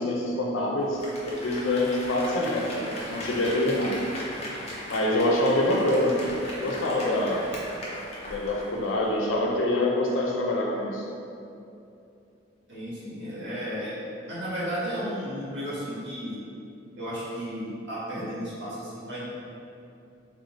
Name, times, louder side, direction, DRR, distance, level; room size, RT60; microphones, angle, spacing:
voice 1, 0.0-4.0 4.9-6.2 6.5-7.6 8.2-11.1, left 1 dB, 90° left, 0 dB, 0.5 m, -26 dB
Applause, 0.8-9.0 9.3-9.4, left 1 dB, 35° left, 0.6 m, -38 dB
voice 2, 12.7-13.9 14.2-16.4 17.0-19.3, equal, 65° right, -10 dB, 1.2 m, -33 dB
3.5 x 2.7 x 2.8 m, 2.7 s
head